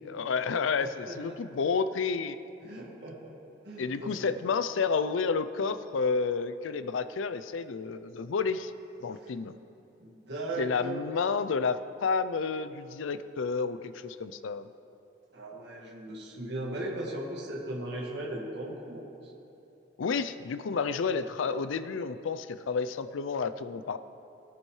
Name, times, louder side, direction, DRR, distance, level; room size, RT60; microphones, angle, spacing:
voice 1, 0.0-2.4 3.8-8.7 9.0-9.5 10.6-14.7 20.0-24.0, left 5 dB, 85° left, 12 dB, 0.4 m, -30 dB
voice 2, 0.8-1.4 2.6-3.3 3.6-4.3 9.2-9.3 10.0-11.0 15.3-19.3, right 1 dB, 60° right, -3 dB, 1.8 m, -38 dB
18.0 x 9.9 x 3.2 m, 2.9 s
head